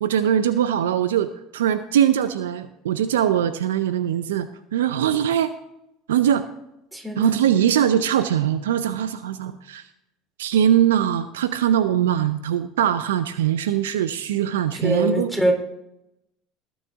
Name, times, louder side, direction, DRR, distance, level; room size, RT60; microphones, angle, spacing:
voice 1, 0.0-5.5 6.1-6.5 7.2-9.8 10.4-15.3, right 10 dB, 80° right, 12 dB, 0.6 m, -21 dB
voice 2, 6.9-7.4 14.7-15.5, equal, 15° right, 4 dB, 3.2 m, -23 dB
19.0 x 7.2 x 3.6 m, 0.83 s
hypercardioid pair, 75°, 0 cm